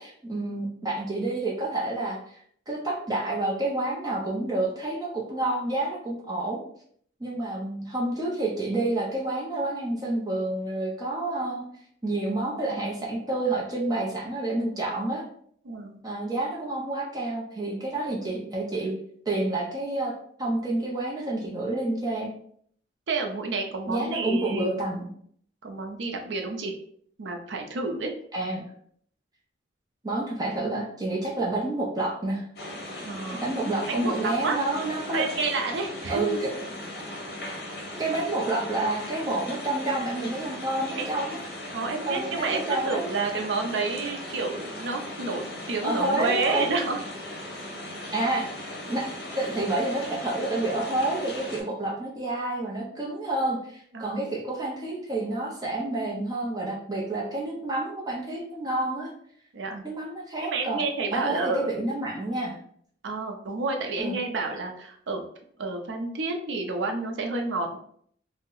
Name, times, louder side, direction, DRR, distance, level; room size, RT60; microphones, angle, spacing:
voice 1, 0.0-6.6 7.2-11.7 12.0-15.2 16.0-18.9 19.3-22.3 23.9-25.1 28.3-28.7 30.0-32.5 32.9-35.3 36.1-36.5 38.0-41.4 42.1-43.0 45.8-46.7 48.1-48.5 48.9-49.1 49.4-59.1 59.8-60.8 61.1-62.6 64.0-64.2, right 2 dB, 20° right, -3 dB, 0.5 m, -29 dB
voice 2, 15.6-16.0 23.1-24.7 25.6-26.7 27.2-28.1 33.0-33.5 33.9-34.6 35.1-36.4 41.0-41.1 41.7-47.0 53.9-54.3 59.5-59.8 60.4-61.7 63.0-65.2 65.6-67.8, right 3 dB, 85° right, 4 dB, 0.5 m, -30 dB
sound 1, 32.6-51.6, left 1 dB, 55° left, 0.7 m, -38 dB
2.7 x 2.1 x 3.7 m, 0.63 s
head